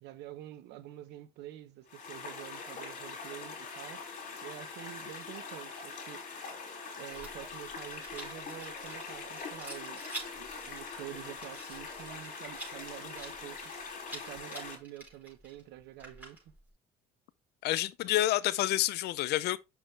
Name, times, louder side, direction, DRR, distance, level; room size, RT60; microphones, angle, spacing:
voice 1, 0.0-4.1 4.4-6.2 7.0-10.0 10.3-13.7 14.1-16.5, right 13 dB, 85° right, 1.0 m, -47 dB
sound 1, 1.9-14.8, left 4 dB, 50° left, 3.6 m, -43 dB
Rattle, 7.1-16.7, right 1 dB, 10° right, 5.0 m, -48 dB
voice 2, 17.6-19.6, left 15 dB, 75° left, 0.6 m, -28 dB
6.3 x 6.0 x 3.2 m
cardioid pair, 110°, 17 cm